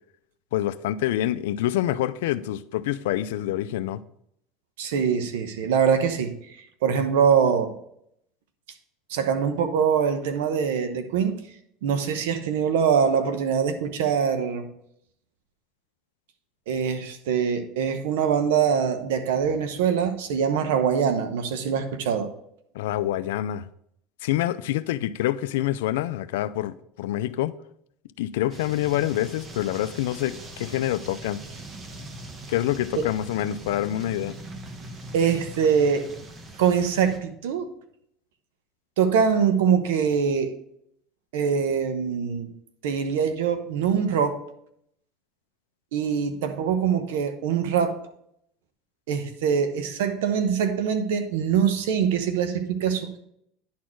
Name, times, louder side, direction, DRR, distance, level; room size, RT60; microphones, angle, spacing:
voice 1, 0.5-4.0 22.7-23.7 24.2-27.5 28.2-31.4 32.5-34.4, left 13 dB, 85° left, 0.4 m, -26 dB
voice 2, 4.8-7.7 9.1-11.4 11.8-14.7 16.7-22.3 35.1-36.1 36.6-37.7 39.0-40.5 41.3-42.5 42.8-44.4 45.9-48.0 49.1-53.2, right 7 dB, 85° right, 1.0 m, -23 dB
sound 1, 28.5-37.2, right 1 dB, 30° right, 1.1 m, -41 dB
10.0 x 4.3 x 4.5 m
supercardioid pair, 120°, 0 cm